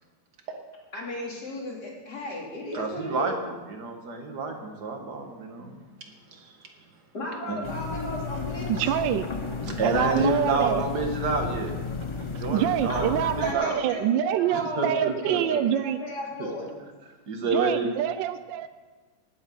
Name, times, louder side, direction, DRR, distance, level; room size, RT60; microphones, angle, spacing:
voice 1, 0.9-3.5 7.1-9.2 12.9-16.8, left 1 dB, 55° left, -2 dB, 3.4 m, -35 dB
voice 2, 2.7-5.8 6.3-6.7 7.5-7.6 9.6-13.8 14.5-15.6 16.4-16.5 17.3-17.9, right 3 dB, 55° right, 3 dB, 2.2 m, -29 dB
sound 1, 7.6-13.5, left 4 dB, 40° left, 0.4 m, -33 dB
voice 3, 8.7-9.3 9.8-10.8 12.4-16.0 17.5-18.7, right 11 dB, 80° right, 11 dB, 1.3 m, -26 dB
18.0 x 8.6 x 5.5 m, 1.3 s
omnidirectional pair, 2.1 m